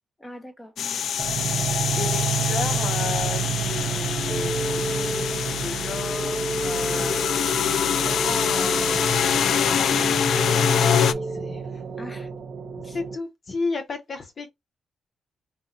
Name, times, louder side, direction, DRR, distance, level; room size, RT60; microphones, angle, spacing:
voice 1, 0.2-1.0 12.0-12.3 12.8-13.0, left 1 dB, 15° left, 1.1 m, -42 dB
sound 1, 0.8-11.1, left 8 dB, 80° left, 0.3 m, -25 dB
sound 2, 1.2-13.2, right 6 dB, 80° right, 0.6 m, -31 dB
voice 2, 1.6-7.2 7.8-12.0 12.8-14.5, left 4 dB, 55° left, 1.2 m, -35 dB
sound 3, 4.3-11.7, right 1 dB, 15° right, 0.4 m, -31 dB
4.9 x 2.4 x 2.5 m
cardioid pair, 70°, 0 cm